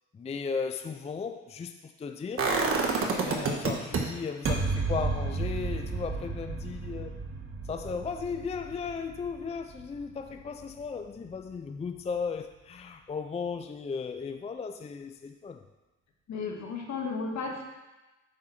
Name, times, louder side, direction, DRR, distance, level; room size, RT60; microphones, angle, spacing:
voice 1, 0.1-2.5 3.0-7.2 7.7-15.6, left 5 dB, 20° left, 8 dB, 0.4 m, -36 dB
sound 1, 2.4-4.0 4.4-10.3 10.6-10.7, right 4 dB, 45° right, 1.3 m, -31 dB
voice 2, 16.3-17.6, left 4 dB, 65° left, 1 dB, 1.6 m, -34 dB
8.8 x 3.9 x 5.7 m, 1.1 s
cardioid pair, 90°, 30 cm